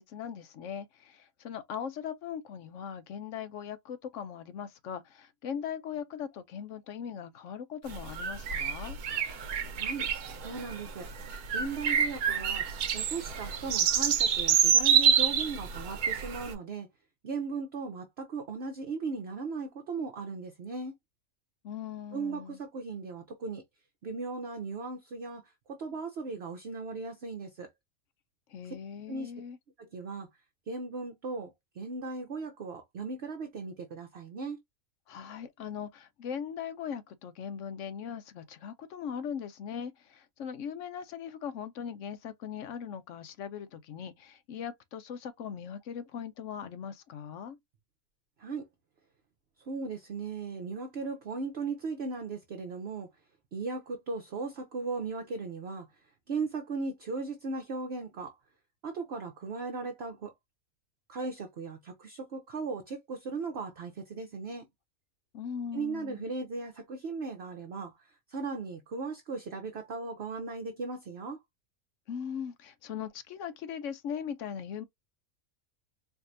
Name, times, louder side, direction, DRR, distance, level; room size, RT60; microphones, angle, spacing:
voice 1, 0.0-9.0 21.6-22.6 28.5-29.6 35.1-47.6 65.3-66.3 72.1-74.9, left 8 dB, 65° left, 0.8 m, -39 dB
sound 1, 7.9-16.5, right 8 dB, 90° right, 1.3 m, -27 dB
voice 2, 9.8-10.1 10.4-11.1 11.5-12.6 12.9-16.9 17.2-20.9 22.1-23.6 24.0-25.4 25.7-27.7 29.1-29.3 29.8-30.3 30.7-31.5 31.8-34.6 48.4-48.6 49.7-53.1 53.5-55.9 56.3-58.3 58.8-60.3 61.1-64.7 65.7-67.9 68.3-71.4, right 4 dB, 55° right, 0.9 m, -37 dB
4.7 x 2.6 x 2.6 m
omnidirectional pair, 1.5 m